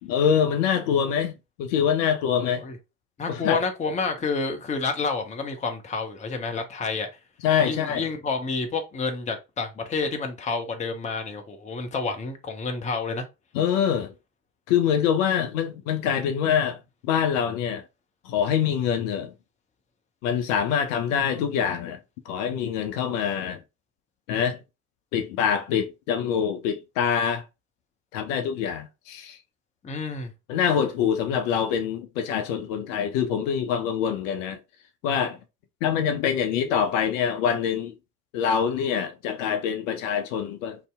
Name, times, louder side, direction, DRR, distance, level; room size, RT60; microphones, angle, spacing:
voice 1, 0.0-2.6 3.3-3.6 7.4-8.1 13.5-14.1 14.7-16.8 17.0-17.8 18.2-19.3 20.2-22.0 22.3-23.6 24.3-24.6 25.1-27.4 28.1-29.4 30.5-34.6 35.0-35.4 35.8-37.9 38.3-40.8, left 8 dB, 60° left, 0.6 m, -25 dB
voice 2, 3.2-7.1 7.7-13.2 29.8-30.3, left 4 dB, 15° left, 0.6 m, -29 dB
2.6 x 2.1 x 3.4 m
figure-of-eight pair, 65°, 45 cm